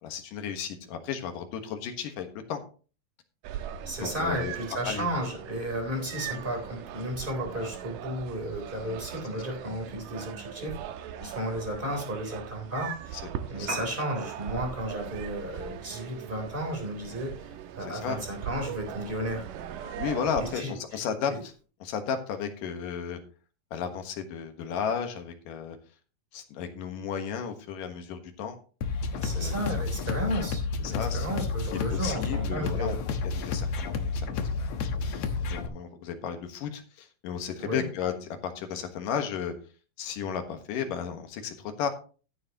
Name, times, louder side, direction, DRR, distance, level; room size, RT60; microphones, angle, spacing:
voice 1, 0.0-2.6 4.0-4.5 4.9-5.1 6.3-6.4 11.2-11.3 13.5-13.8 17.9-18.2 20.0-21.5 21.8-23.2 23.7-25.8 26.3-28.6 29.2-29.6 30.8-31.3 31.9-34.5 35.4-39.5 40.0-41.9, left 7 dB, 75° left, 6 dB, 3.0 m, -34 dB
sound 1, 3.4-20.6, right 10 dB, 85° right, 2.5 m, -40 dB
voice 2, 3.5-13.2 13.5-19.5 20.4-21.0 21.3-21.4 29.2-30.6 30.9-33.0 37.6-37.8, equal, 15° right, 2 dB, 3.6 m, -33 dB
Piano, 13.6-21.6, right 3 dB, 50° right, 4.2 m, -48 dB
sound 2, 28.8-35.7, left 4 dB, 60° left, 2.1 m, -31 dB
14.0 x 9.4 x 3.0 m, 0.37 s
omnidirectional pair, 3.9 m